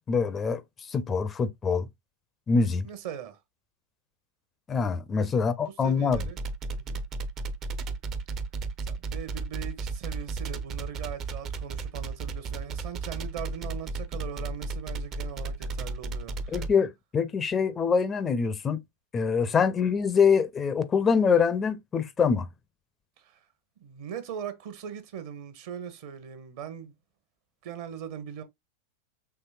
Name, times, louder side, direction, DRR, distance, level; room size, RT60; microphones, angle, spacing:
voice 1, 0.1-1.9 2.5-2.9 4.7-6.2 16.5-18.8 19.1-22.5, left 5 dB, 20° left, 0.4 m, -25 dB
voice 2, 2.8-3.4 5.1-5.4 5.8-6.4 6.8-7.0 8.9-16.6 19.5-19.6 23.2-23.4 23.8-26.9 27.6-28.4, right 8 dB, 50° right, 0.9 m, -40 dB
sound 1, 6.1-16.7, right 3 dB, 35° right, 0.5 m, -33 dB
5.9 x 3.1 x 2.4 m
figure-of-eight pair, 90°, 0 cm